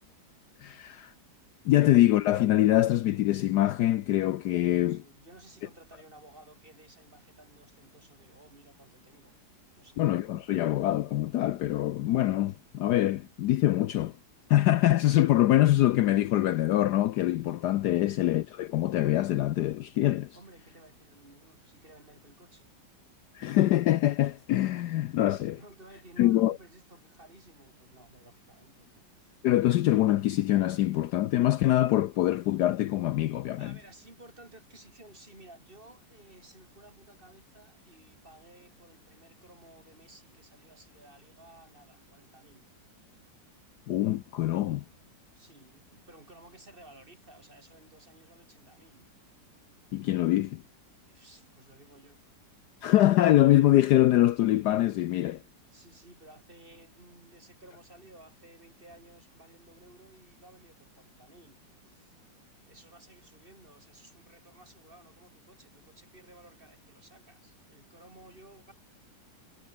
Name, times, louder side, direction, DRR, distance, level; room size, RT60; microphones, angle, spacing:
voice 1, 0.6-1.1 1.6-5.0 10.0-14.1 14.5-20.4 23.3-25.6 26.2-26.6 29.4-33.7 43.9-44.8 49.9-50.6 52.8-55.4, left 14 dB, 70° left, 1.1 m, -24 dB
voice 2, 4.8-9.4 9.8-10.1 18.0-18.1 20.3-22.7 25.5-29.3 33.5-42.7 45.3-49.1 51.0-52.2 55.7-62.2 62.6-68.7, right 1 dB, 30° right, 5.1 m, -55 dB
omnidirectional pair, 2.0 m